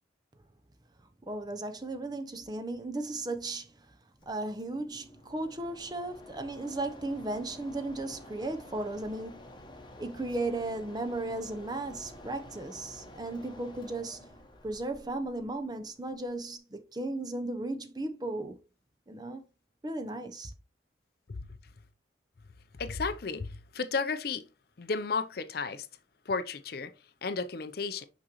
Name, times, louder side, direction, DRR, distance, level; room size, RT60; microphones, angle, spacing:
voice 1, 1.3-3.7 4.3-9.6 10.0-18.6 19.1-19.4 19.8-20.5, right 2 dB, 20° right, 0.6 m, -36 dB
Mechanisms, 4.2-16.6, left 1 dB, 25° left, 1.0 m, -51 dB
voice 2, 22.7-24.4 24.8-25.9 26.3-26.9 27.2-28.1, left 4 dB, 55° left, 0.5 m, -33 dB
6.2 x 5.2 x 3.0 m
head